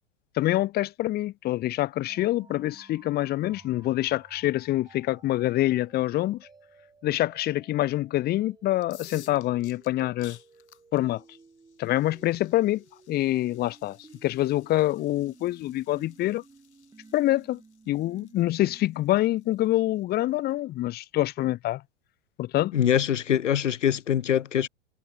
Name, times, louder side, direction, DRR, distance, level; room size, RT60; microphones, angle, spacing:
voice 1, 0.4-6.5 7.0-10.4 10.9-11.2 11.8-14.0 14.2-16.4 17.1-17.6 17.9-21.8 22.4-22.7, left 15 dB, 25° left, 0.9 m, -26 dB
sound 1, 2.1-20.6, right 4 dB, 10° right, 4.8 m, -55 dB
sound 2, 8.8-20.5, left 10 dB, 65° left, 7.9 m, -56 dB
voice 2, 22.7-24.7, left 9 dB, 85° left, 0.5 m, -23 dB
figure-of-eight pair, 90°, 36 cm